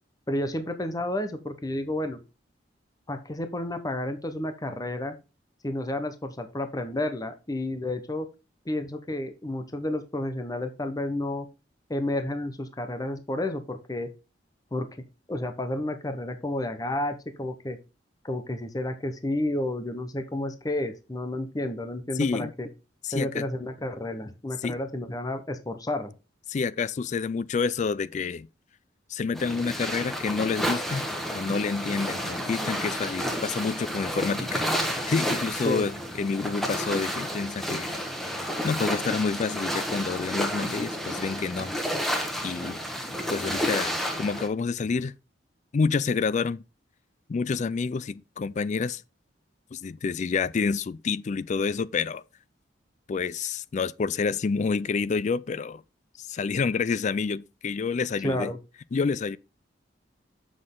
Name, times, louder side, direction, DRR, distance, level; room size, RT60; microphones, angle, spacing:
voice 1, 0.3-2.2 3.1-5.2 5.6-8.3 8.7-11.5 11.9-14.1 14.7-14.9 15.3-17.8 18.2-22.7 23.1-26.1 35.6-35.9 58.2-58.6, left 1 dB, 20° left, 0.8 m, -31 dB
voice 2, 22.2-22.5 23.0-23.5 24.6-24.8 26.5-28.5 29.1-31.0 31.3-41.7 42.4-42.8 43.3-45.1 45.7-46.6 47.3-49.0 49.7-52.2 53.1-55.8 56.2-58.5 58.9-59.4, left 5 dB, 40° left, 0.4 m, -28 dB
sound 1, 29.3-44.5, equal, ahead, 1.4 m, -31 dB
7.5 x 6.3 x 3.7 m
head